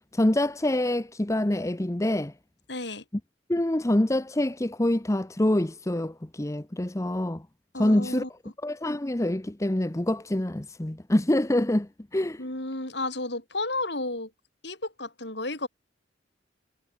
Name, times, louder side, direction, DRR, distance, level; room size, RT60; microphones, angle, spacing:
voice 1, 0.0-2.3 3.5-7.5 7.8-8.2 8.6-12.4, left 1 dB, 15° left, 0.8 m, -26 dB
voice 2, 2.7-3.0 7.7-8.3 12.4-14.3 14.6-15.7, left 2 dB, 65° left, 7.5 m, -32 dB
head